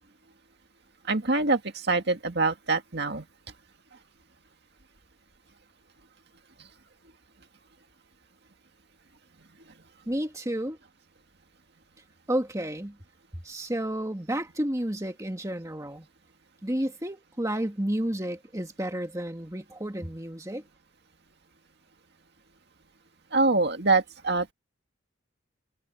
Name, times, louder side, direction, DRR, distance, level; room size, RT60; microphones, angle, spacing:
voice 1, 1.1-3.2 23.3-24.5, right 3 dB, 50° right, 2.1 m, -25 dB
voice 2, 10.0-10.8 12.3-13.0 13.4-16.1 16.6-20.6, right 1 dB, 15° right, 1.8 m, -31 dB
head